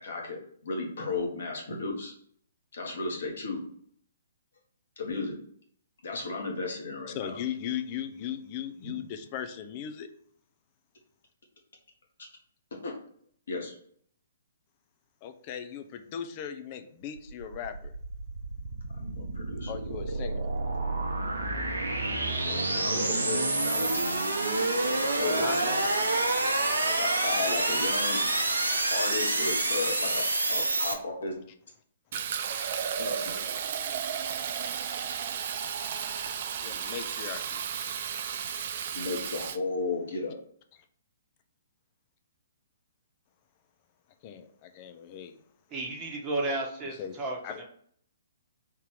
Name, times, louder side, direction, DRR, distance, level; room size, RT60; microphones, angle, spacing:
voice 1, 0.0-2.1 2.7-3.6 5.0-5.4 6.0-7.4 8.8-8.9 12.7-13.0 13.5-13.7 18.9-19.7 22.4-24.0 24.6-25.8 26.8-28.2 28.9-31.4 33.0-33.2 38.9-40.3, left 3 dB, 60° left, 0 dB, 1.3 m, -34 dB
voice 2, 7.1-10.1 15.2-17.9 19.7-20.4 25.4-25.6 32.9-33.0 36.6-37.6 44.2-45.4 47.0-47.2 47.4-47.6, left 9 dB, 35° left, 7 dB, 0.5 m, -38 dB
sound 1, 17.2-30.9, right 2 dB, 75° right, 0.7 m, -28 dB
Fill (with liquid), 32.1-39.6, right 7 dB, 45° right, 0.4 m, -33 dB
voice 3, 45.7-47.4, right 2 dB, 25° right, -1 dB, 1.1 m, -32 dB
3.8 x 2.8 x 4.7 m, 0.62 s
figure-of-eight pair, 125°, 0 cm